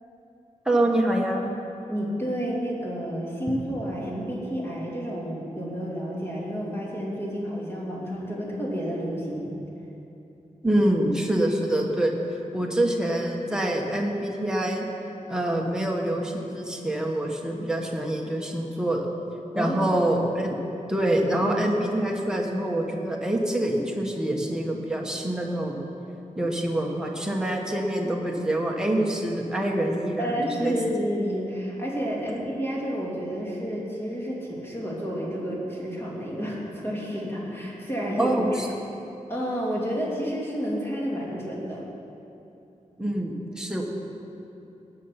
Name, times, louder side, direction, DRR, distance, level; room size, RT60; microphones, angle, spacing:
voice 1, 0.6-1.4 10.6-14.8 15.3-19.1 19.5-20.5 20.9-25.8 26.4-30.7 38.1-38.7 43.0-43.8, right 1 dB, 5° right, -1 dB, 1.3 m, -26 dB
voice 2, 1.9-9.5 19.5-20.0 30.2-38.3 39.3-41.8, equal, 20° left, -5 dB, 2.6 m, -30 dB
18.5 x 6.7 x 5.9 m, 2.8 s
wide cardioid pair, 150°, 13 cm